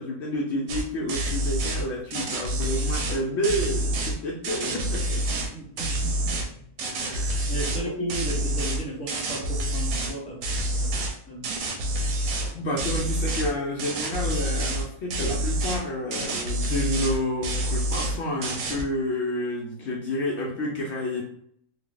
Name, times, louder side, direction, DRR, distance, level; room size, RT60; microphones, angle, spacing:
voice 1, 0.0-5.2 6.9-7.5 12.5-21.3, left 1 dB, 65° left, -3 dB, 0.8 m, -30 dB
sound 1, 0.7-1.8 2.1-4.1 4.4-5.5 5.8-6.5 6.8-7.8 8.1-10.1 10.4-11.1 11.4-12.5 12.8-13.5 13.8-14.8 15.1-15.8 16.1-17.2 17.4-18.2 18.4-18.8, right 1 dB, 85° right, 1.0 m, -27 dB
voice 2, 5.3-6.7 7.5-10.4 10.7-10.9 11.3-11.5, right 1 dB, 5° left, -5 dB, 0.8 m, -35 dB
2.7 x 2.2 x 3.7 m, 0.67 s
omnidirectional pair, 1.4 m